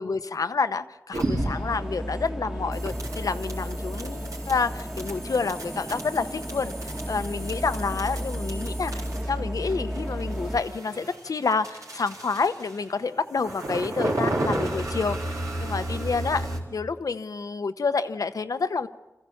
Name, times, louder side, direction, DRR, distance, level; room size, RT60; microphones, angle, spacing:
voice 1, 0.0-8.9 9.3-15.3 15.6-18.9, left 4 dB, 85° left, 11 dB, 0.8 m, -28 dB
sound 1, 1.1-1.8 2.7-9.4 9.7-12.8 13.3-16.6, right 1 dB, 90° right, 3.8 m, -33 dB
sound 2, 1.4-10.6, equal, 10° right, 1.3 m, -33 dB
27.0 x 15.0 x 7.1 m, 1.1 s
wide cardioid pair, 80°, 6 cm